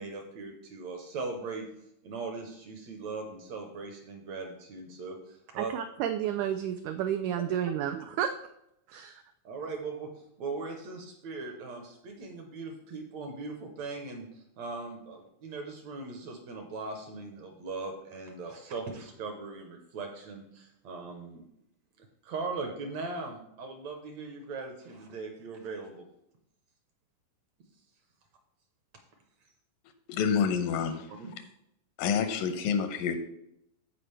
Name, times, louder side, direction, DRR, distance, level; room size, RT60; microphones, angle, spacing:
voice 1, 0.0-1.7 2.0-5.7 9.4-10.1 10.4-21.4 22.0-26.1 31.2-31.3, right 3 dB, 70° right, 4 dB, 1.8 m, -39 dB
voice 2, 5.6-8.3 8.9-9.2, right 9 dB, 85° right, 8 dB, 1.7 m, -31 dB
voice 3, 30.1-31.1 32.0-33.2, left 7 dB, 85° left, 8 dB, 2.5 m, -28 dB
14.5 x 4.9 x 3.3 m, 0.80 s
omnidirectional pair, 4.0 m